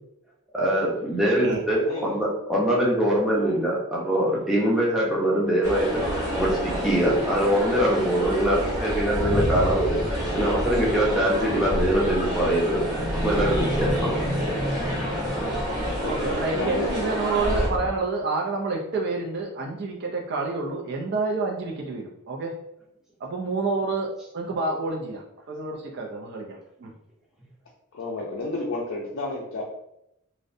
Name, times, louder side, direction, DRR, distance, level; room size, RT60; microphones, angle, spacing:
voice 1, 0.5-10.0 10.3-14.3 15.4-15.5, right 1 dB, ahead, -5 dB, 0.6 m, -23 dB
voice 2, 1.8-2.2 3.3-3.5 16.0-17.0 27.9-29.7, left 2 dB, 60° left, -4 dB, 0.4 m, -32 dB
sound 1, 5.6-17.7, equal, 30° right, 1.1 m, -29 dB
sound 2, 8.2-17.9, equal, 75° right, 1.0 m, -30 dB
voice 3, 16.1-22.5 23.2-24.1 24.3-26.9, right 3 dB, 50° right, 0 dB, 0.3 m, -28 dB
2.5 x 2.0 x 2.5 m, 0.81 s
head